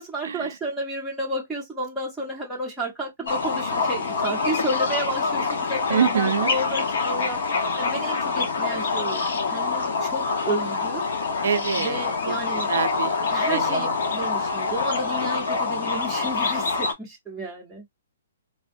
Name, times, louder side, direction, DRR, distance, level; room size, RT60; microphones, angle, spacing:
voice 1, 0.0-7.4 7.8-11.0 11.8-12.7 13.3-17.8, right 1 dB, ahead, 0.8 m, -31 dB
sound 1, 3.3-16.9, left 4 dB, 60° left, 1.0 m, -26 dB
voice 2, 5.9-6.5 11.4-12.3 12.7-13.2 13.5-13.9, right 7 dB, 65° right, 0.4 m, -25 dB
3.4 x 2.1 x 2.6 m
hypercardioid pair, 175°, 0 cm